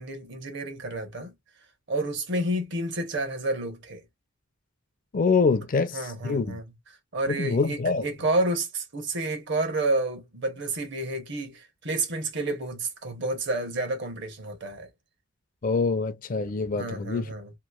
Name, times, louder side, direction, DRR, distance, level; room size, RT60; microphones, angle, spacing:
voice 1, 0.0-1.3 1.9-4.0 5.9-6.6 7.1-14.9 16.7-17.5, right 2 dB, 60° right, 1.0 m, -30 dB
voice 2, 5.1-6.6 7.3-8.0 15.6-17.3, left 4 dB, 40° left, 0.4 m, -25 dB
3.0 x 2.5 x 2.3 m
head